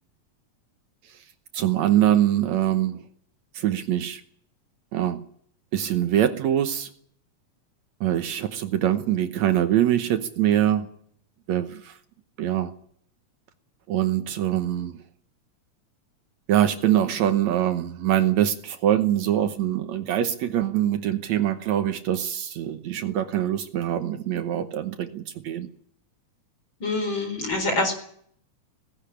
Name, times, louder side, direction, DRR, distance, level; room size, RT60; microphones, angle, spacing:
voice 1, 1.5-3.0 3.5-4.2 4.9-5.2 5.7-6.9 8.0-10.9 11.5-12.0 12.4-12.7 13.9-15.0 16.5-25.7, right 11 dB, 70° right, 9 dB, 2.2 m, -23 dB
voice 2, 26.8-27.9, left 2 dB, 40° left, 6 dB, 5.0 m, -25 dB
18.0 x 16.0 x 10.0 m, 0.63 s
omnidirectional pair, 3.5 m